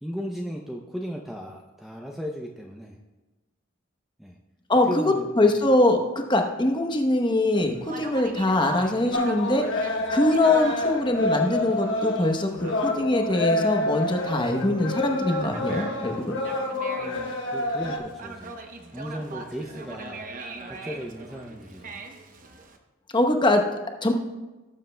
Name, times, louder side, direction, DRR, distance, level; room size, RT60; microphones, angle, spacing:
voice 1, 0.0-3.0 4.2-4.4 4.9-5.6 16.9-18.5 18.9-20.3 20.7-22.0, equal, ahead, 0 dB, 0.5 m, -36 dB
voice 2, 4.7-16.4 23.1-24.1, left 1 dB, 20° left, 4 dB, 0.9 m, -23 dB
Conversation, 7.7-22.8, right 3 dB, 40° right, 0.8 m, -42 dB
sound 1, 9.1-18.0, left 2 dB, 60° left, 1.2 m, -28 dB
18.0 x 7.5 x 2.2 m, 1.2 s
head